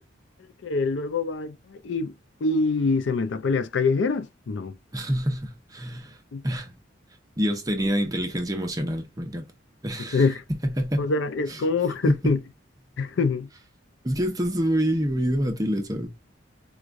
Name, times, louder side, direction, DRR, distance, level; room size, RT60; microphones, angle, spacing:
voice 1, 0.6-2.1 2.4-4.7 6.3-6.4 10.0-10.4 11.0-12.4 13.0-13.5, left 4 dB, 75° left, 0.4 m, -25 dB
voice 2, 4.9-6.2 6.4-6.7 7.4-9.4 9.8-10.3 10.6-11.1 11.5-11.6 12.0-12.4 14.0-16.1, equal, 20° right, 0.7 m, -26 dB
4.6 x 2.3 x 2.5 m
head